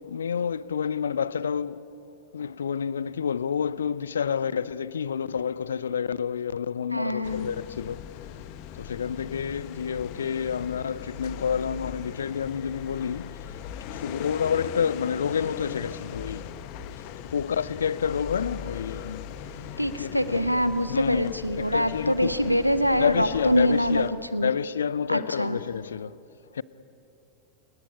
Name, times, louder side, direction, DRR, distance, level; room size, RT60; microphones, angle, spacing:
voice 1, 0.0-1.9 2.3-8.0 8.7-13.4 13.8-16.5 17.0-19.4 19.9-20.5 20.9-22.5 23.0-24.1 24.4-26.2 26.5-26.6, left 7 dB, 70° left, 0.6 m, -29 dB
voice 2, 6.9-7.5 19.8-24.0 24.3-24.5 25.1-25.6, equal, 90° left, 1.1 m, -25 dB
sound 1, 7.2-24.1, left 8 dB, 45° left, 1.2 m, -40 dB
28.5 x 19.0 x 9.9 m
figure-of-eight pair, 90°, 0 cm